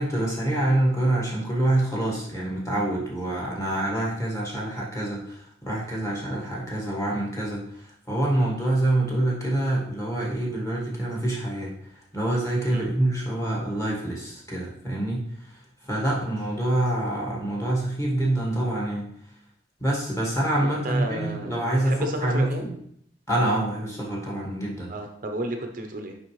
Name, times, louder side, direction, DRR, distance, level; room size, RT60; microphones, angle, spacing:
voice 1, 0.0-19.2 19.8-22.8 23.3-24.9, right 1 dB, 15° left, -3 dB, 1.4 m, -26 dB
voice 2, 20.6-21.5 21.8-22.7 24.9-26.1, right 1 dB, 45° right, 4 dB, 0.6 m, -32 dB
6.1 x 4.8 x 3.1 m, 0.68 s
head